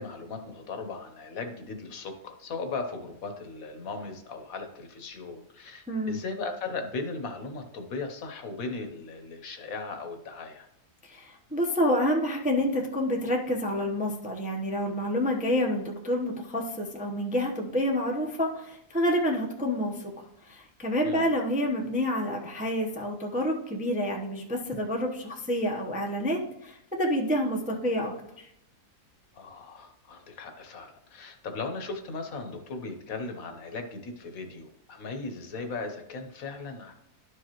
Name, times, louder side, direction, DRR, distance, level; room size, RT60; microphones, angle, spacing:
voice 1, 0.0-10.7 21.0-21.3 29.3-36.9, left 3 dB, 65° left, 5 dB, 1.3 m, -37 dB
voice 2, 5.9-6.2 11.0-20.1 20.4-28.5, equal, 10° right, 0 dB, 0.6 m, -28 dB
11.5 x 4.8 x 3.0 m, 0.81 s
omnidirectional pair, 1.7 m